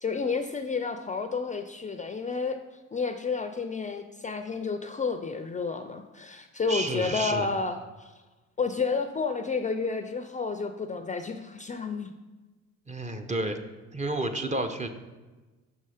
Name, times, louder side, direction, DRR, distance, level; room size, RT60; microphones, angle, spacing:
voice 1, 0.0-2.6 2.9-8.1 8.6-12.1, left 4 dB, 25° left, 7 dB, 0.4 m, -31 dB
voice 2, 6.7-7.5 12.9-13.6 13.9-14.9, right 2 dB, 25° right, 6 dB, 0.7 m, -30 dB
6.2 x 5.5 x 4.9 m, 1.2 s
cardioid pair, 90°, 30 cm